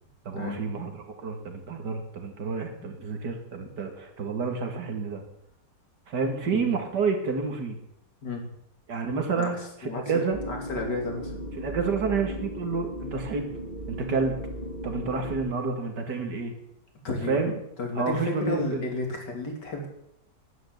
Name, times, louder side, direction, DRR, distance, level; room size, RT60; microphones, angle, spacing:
voice 1, 0.3-5.2 6.1-7.8 8.9-10.4 11.6-13.5 13.9-14.4 14.8-16.5 17.3-17.5 18.0-18.8, right 4 dB, 70° right, 4 dB, 2.6 m, -29 dB
sound 1, 10.3-15.5, equal, 30° right, 2.3 m, -36 dB
voice 2, 10.5-11.4 17.0-17.5 17.8-19.9, left 2 dB, 70° left, 1 dB, 3.6 m, -32 dB
11.0 x 9.7 x 8.1 m, 0.80 s
omnidirectional pair, 1.9 m